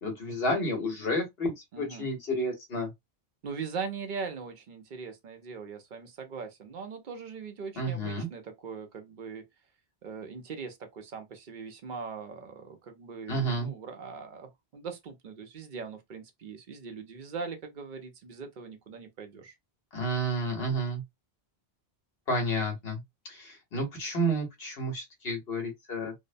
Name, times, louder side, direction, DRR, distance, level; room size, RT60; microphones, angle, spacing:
voice 1, 0.0-2.9 7.7-8.3 13.3-13.7 19.9-21.0 22.3-26.1, right 1 dB, 65° left, 1.3 m, -31 dB
voice 2, 1.7-2.1 3.4-9.4 10.0-19.5, right 5 dB, 55° right, 0.7 m, -40 dB
2.7 x 2.1 x 2.5 m
omnidirectional pair, 1.1 m